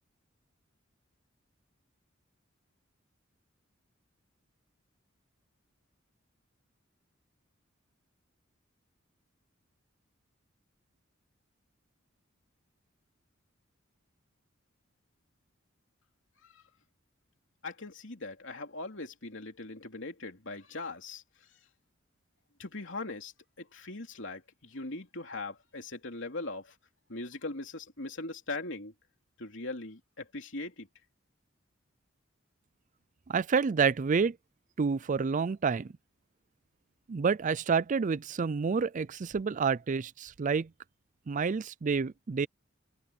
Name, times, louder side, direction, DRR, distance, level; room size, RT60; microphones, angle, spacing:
voice 1, 17.6-21.2 22.6-23.3 23.6-26.7 27.1-28.9 29.4-30.9, left 2 dB, 65° left, 3.3 m, -40 dB
voice 2, 33.3-34.4 34.8-35.9 37.1-40.7 41.3-42.5, right 5 dB, 40° right, 0.4 m, -28 dB
head